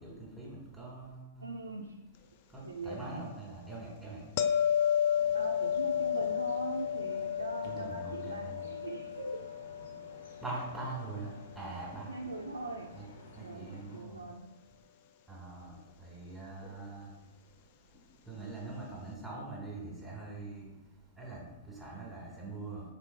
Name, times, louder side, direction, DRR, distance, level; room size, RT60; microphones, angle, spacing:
voice 1, 0.0-1.5 2.5-4.2 7.6-8.6 10.4-12.1 12.9-13.0 13.4-14.2 15.3-17.1 18.2-20.7 21.2-22.8, right 3 dB, 5° right, -6 dB, 1.3 m, -43 dB
voice 2, 1.4-2.0 2.6-3.2 5.3-9.4 12.1-13.0 13.3-14.6, right 2 dB, 90° right, 0 dB, 0.3 m, -41 dB
sound 1, 4.4-11.4 16.6-16.8, left 9 dB, 45° left, 0.3 m, -32 dB
sound 2, 5.1-14.0, left 1 dB, 65° left, 0.8 m, -54 dB
4.1 x 3.6 x 3.4 m, 0.99 s
figure-of-eight pair, 110°, 0 cm